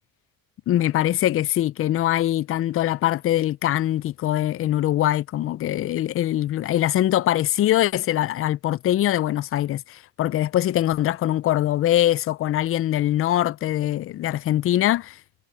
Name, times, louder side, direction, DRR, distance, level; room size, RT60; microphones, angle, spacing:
voice 1, 0.7-15.2, left 13 dB, 40° left, 0.4 m, -22 dB
cardioid pair, 125°, 36 cm